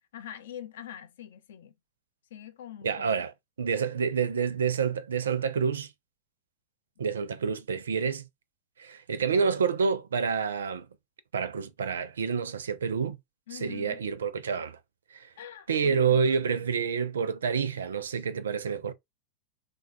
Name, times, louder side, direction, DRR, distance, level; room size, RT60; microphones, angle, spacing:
voice 1, 0.1-1.7 2.3-3.2 13.5-14.0 15.4-16.7, left 10 dB, 60° left, 0.4 m, -44 dB
voice 2, 2.8-5.9 7.0-8.3 8.8-10.9 11.3-13.2 13.5-14.8 15.1-15.3 15.7-18.9, right 6 dB, 65° right, 0.4 m, -28 dB
3.5 x 2.2 x 2.2 m
figure-of-eight pair, 90°, 0 cm